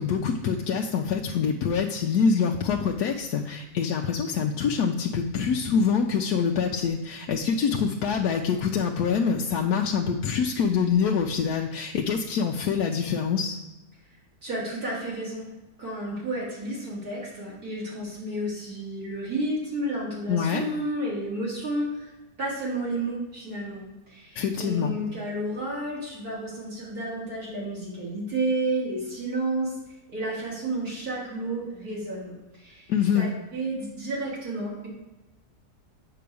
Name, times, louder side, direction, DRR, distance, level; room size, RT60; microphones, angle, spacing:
voice 1, 0.0-13.6 20.3-20.6 24.3-24.9 32.9-33.3, left 6 dB, 80° left, 1 dB, 1.2 m, -25 dB
voice 2, 14.4-15.5 15.8-22.1 22.4-29.8 30.1-34.9, right 1 dB, 65° right, -6 dB, 3.6 m, -31 dB
7.6 x 4.8 x 6.9 m, 1.1 s
omnidirectional pair, 1.7 m